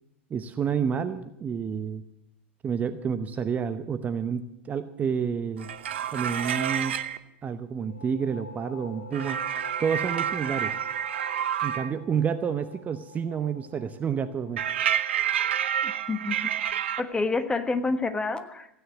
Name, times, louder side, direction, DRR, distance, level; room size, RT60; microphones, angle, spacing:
voice 1, 0.3-2.0 2.6-5.7 6.1-7.0 7.4-9.4 9.8-10.7 11.6-14.6, right 7 dB, 25° right, 10 dB, 0.8 m, -29 dB
sound 1, 5.6-7.2 9.1-11.9 14.6-17.0, right 9 dB, 70° right, 0.8 m, -29 dB
sound 2, 7.6-17.0, left 2 dB, 85° left, 3.0 m, -47 dB
voice 2, 15.8-16.4 17.0-18.7, left 3 dB, 15° left, 9 dB, 1.3 m, -28 dB
15.5 x 9.6 x 8.0 m, 0.83 s
figure-of-eight pair, 90°, 6 cm